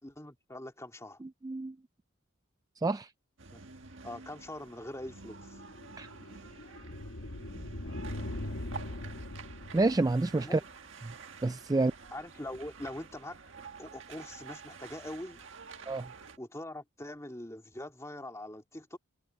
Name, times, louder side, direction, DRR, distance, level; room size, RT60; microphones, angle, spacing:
voice 1, 0.0-1.2 3.5-3.6 4.0-5.6 10.4-10.6 11.7-11.8 12.1-13.4 13.8-15.4 16.4-19.0, left 1 dB, 15° left, 2.2 m, -43 dB
voice 2, 1.2-1.8 2.8-3.1 6.0-6.1 9.7-10.6 11.0-11.1 11.4-11.9 15.9-16.1, right 2 dB, 15° right, 0.3 m, -28 dB
sound 1, 3.4-16.4, right 5 dB, 60° right, 1.7 m, -49 dB
sound 2, 5.2-10.6, left 1 dB, 85° left, 1.5 m, -41 dB
head